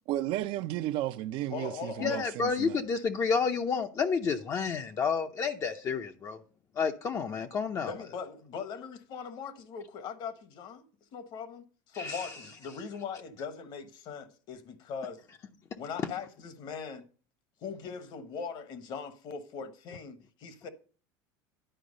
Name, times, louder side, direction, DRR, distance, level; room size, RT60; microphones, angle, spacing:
voice 1, 0.1-2.8, right 14 dB, 60° right, 0.6 m, -33 dB
voice 2, 1.5-2.3 7.8-10.8 11.1-15.2 15.8-17.0 17.6-20.7, left 6 dB, 50° left, 1.1 m, -40 dB
voice 3, 2.0-6.4 6.8-7.9 12.0-12.3, left 5 dB, 35° left, 0.6 m, -30 dB
10.5 x 4.6 x 5.2 m
supercardioid pair, 110°, 10 cm